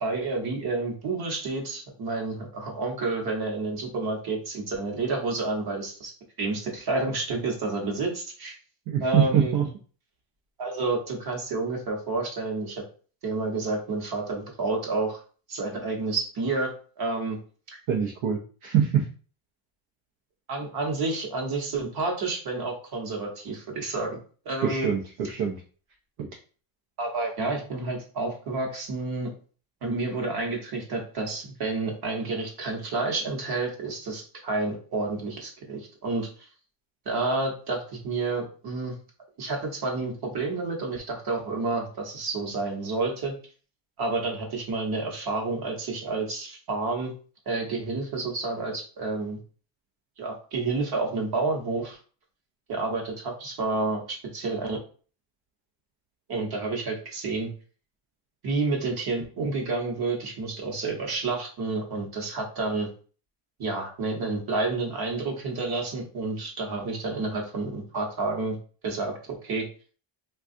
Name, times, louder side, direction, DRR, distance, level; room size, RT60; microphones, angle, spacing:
voice 1, 0.0-6.1 6.4-8.5 9.0-9.5 10.6-12.8 13.2-15.2 15.5-16.7 17.0-17.4 20.5-24.2 24.4-24.9 27.0-29.3 29.8-36.3 37.1-38.9 39.4-43.3 44.0-47.1 47.5-49.4 50.2-52.0 52.7-54.8 56.3-57.5 58.4-62.9 63.6-68.6 68.8-69.7, right 3 dB, 50° right, 1 dB, 1.0 m, -29 dB
voice 2, 8.9-9.7 17.9-19.1 24.6-25.6 26.2-26.3, right 8 dB, 75° right, 0 dB, 0.7 m, -24 dB
3.5 x 2.3 x 2.5 m, 0.39 s
cardioid pair, 150°, 50 cm